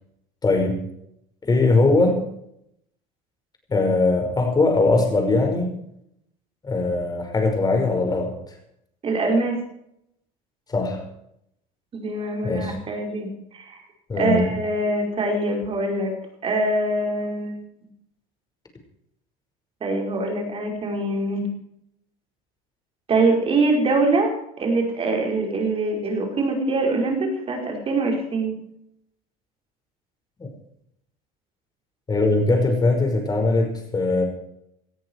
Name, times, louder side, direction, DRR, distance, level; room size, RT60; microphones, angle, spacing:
voice 1, 0.4-0.9 1.4-2.2 3.7-5.8 6.6-8.3 10.7-11.0 12.4-12.7 14.1-14.5 32.1-34.2, left 3 dB, 25° left, 4 dB, 5.7 m, -20 dB
voice 2, 9.0-9.6 11.9-13.3 13.5-13.8 14.2-16.1 16.4-17.6 19.8-21.5 23.1-28.6, right 2 dB, 35° right, 2 dB, 5.3 m, -23 dB
19.0 x 13.5 x 4.8 m, 0.76 s
supercardioid pair, 110°, 17 cm